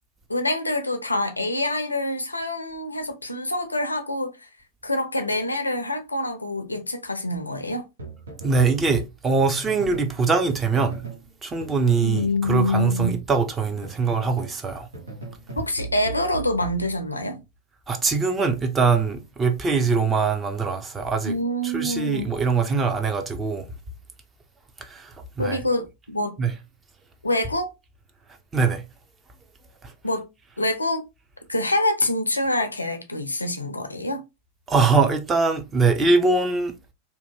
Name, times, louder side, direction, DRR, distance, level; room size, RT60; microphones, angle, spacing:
voice 1, 0.3-4.5 4.8-7.9 12.0-13.2 15.6-17.4 21.2-22.3 25.4-26.4 27.2-27.7 30.0-30.3 30.6-31.0 31.5-34.2, left 1 dB, 90° left, 0.4 m, -26 dB
sound 1, 8.0-10.1 10.5-11.3 11.6-14.6 14.9-17.4, right 3 dB, 75° right, 0.8 m, -39 dB
voice 2, 8.4-11.1 11.4-14.9 17.9-21.4 21.6-23.7 24.8-25.6 26.4-26.5 28.5-28.8 29.8-29.9 34.7-36.7, right 4 dB, 20° right, 0.6 m, -22 dB
2.8 x 2.2 x 2.7 m
figure-of-eight pair, 90°, 0 cm